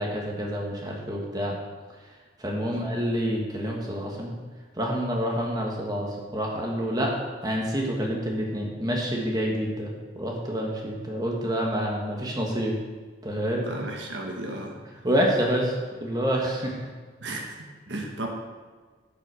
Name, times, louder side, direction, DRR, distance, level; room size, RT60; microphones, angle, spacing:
voice 1, 0.0-1.6 2.4-4.3 4.8-7.1 7.4-12.8 13.2-13.6 15.0-15.7 16.0-16.7, equal, 20° right, -1 dB, 1.5 m, -27 dB
voice 2, 13.6-14.8 17.2-18.3, right 2 dB, 70° right, 1 dB, 1.3 m, -35 dB
12.0 x 5.7 x 4.9 m, 1.5 s
head